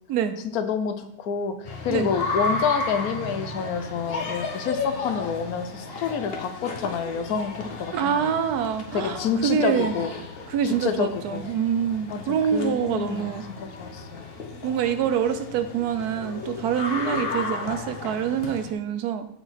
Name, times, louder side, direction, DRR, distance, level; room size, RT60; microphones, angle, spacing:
voice 1, 0.5-8.3 8.9-10.1 10.6-11.5 12.1-12.2 12.5-13.3 13.6-14.3, left 7 dB, 75° left, 9 dB, 1.2 m, -28 dB
sound 1, 1.6-18.7, left 3 dB, 45° left, 1.1 m, -34 dB
voice 2, 7.9-10.0 10.5-13.4 14.6-19.3, right 8 dB, 85° right, 10 dB, 1.2 m, -25 dB
8.8 x 4.5 x 4.2 m, 0.75 s
omnidirectional pair, 1.6 m